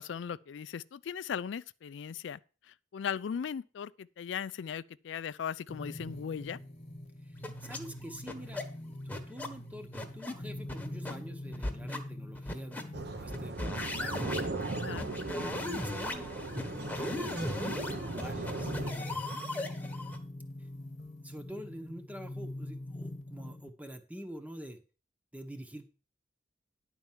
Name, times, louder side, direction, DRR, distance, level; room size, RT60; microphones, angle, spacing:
voice 1, 0.0-2.4 2.7-6.6 14.8-15.1, left 7 dB, 80° left, 0.4 m, -38 dB
sound 1, 5.7-23.7, left 1 dB, 40° left, 1.5 m, -44 dB
sound 2, 7.4-7.8 8.3-8.6 9.1-9.5 9.9-10.3 10.7-11.2 11.5-12.0 12.3-12.8 13.3-20.2, left 1 dB, 10° left, 1.2 m, -37 dB
voice 2, 7.6-14.2 15.4-16.3 17.0-19.2 21.2-24.8 25.3-25.9, equal, 10° right, 1.0 m, -46 dB
sound 3, 12.9-18.9, right 2 dB, 60° right, 0.9 m, -38 dB
10.5 x 4.5 x 7.3 m
head